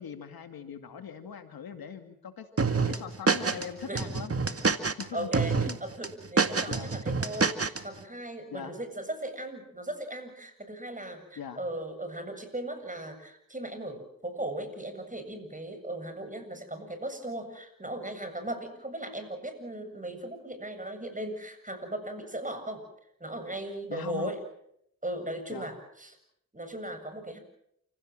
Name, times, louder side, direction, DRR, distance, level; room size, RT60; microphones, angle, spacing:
voice 1, 0.0-4.3 5.0-5.3 5.7-5.8 6.7-6.9 8.5-8.7 11.4-11.6 23.9-24.4 25.5-25.7, left 7 dB, 90° left, 7 dB, 2.4 m, -41 dB
sound 1, 2.6-3.7 4.0-5.0 5.3-5.7 6.0-7.8, right 4 dB, 40° right, 2.0 m, -26 dB
voice 2, 5.1-22.8 23.2-24.4 25.0-26.2 26.5-27.4, right 1 dB, 20° right, 8 dB, 7.7 m, -37 dB
28.5 x 17.0 x 7.7 m, 0.73 s
cardioid pair, 45°, 35 cm